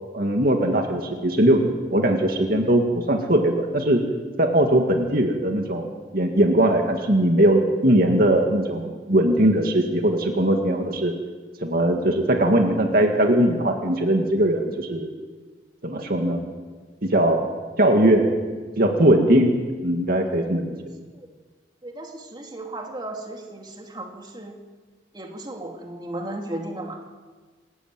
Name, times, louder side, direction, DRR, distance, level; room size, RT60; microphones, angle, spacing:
voice 1, 0.1-4.0 4.4-5.9 6.1-11.1 11.6-15.1 15.8-16.4 17.0-17.4 17.8-18.3 18.8-19.5 19.8-20.7, right 1 dB, 55° right, 3 dB, 2.2 m, -20 dB
voice 2, 21.8-24.6 25.1-27.0, right 1 dB, 25° right, 2 dB, 2.6 m, -35 dB
27.0 x 14.5 x 9.3 m, 1.4 s
head